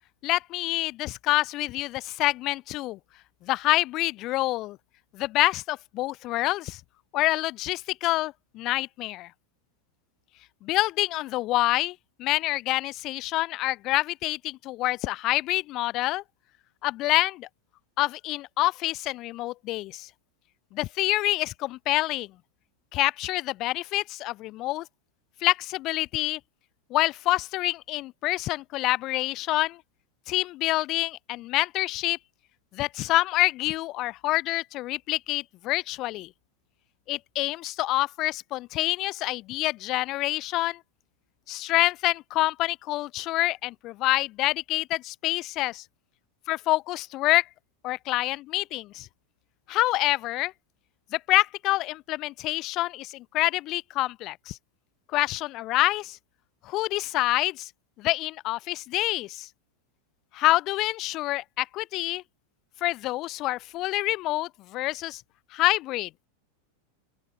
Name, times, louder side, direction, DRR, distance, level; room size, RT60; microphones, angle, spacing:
voice 1, 0.2-3.0 3.4-4.8 5.1-6.8 7.1-9.3 10.6-16.2 16.8-17.5 18.0-20.1 20.7-22.3 22.9-24.9 25.4-26.4 26.9-29.8 30.3-32.2 32.7-36.3 37.1-40.8 41.5-45.8 46.5-47.5 47.8-49.1 49.7-50.5 51.1-54.6 55.1-56.2 56.6-57.7 58.0-59.5 60.3-62.2 62.8-65.2 65.5-66.1, left 17 dB, 40° left, 2.1 m, -27 dB
open air
figure-of-eight pair, 90°, 0 cm